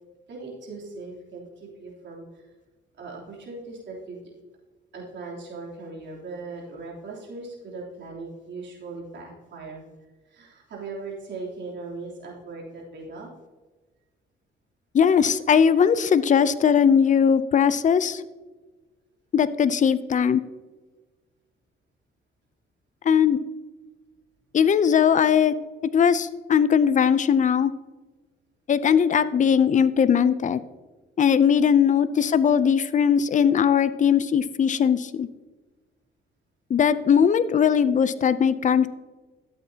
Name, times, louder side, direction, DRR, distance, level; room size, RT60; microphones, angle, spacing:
voice 1, 0.3-2.5 3.0-4.3 4.9-9.8 10.3-13.3 17.5-17.7 25.3-25.8 32.0-32.4, right 3 dB, 65° right, -3 dB, 3.3 m, -39 dB
voice 2, 14.9-18.2 19.3-20.4 23.0-23.4 24.5-25.5 25.9-27.7 28.7-30.6 31.2-35.3 36.7-38.9, left 7 dB, 40° left, 14 dB, 0.5 m, -19 dB
12.5 x 8.2 x 2.8 m, 1.2 s
cardioid pair, 90°, 20 cm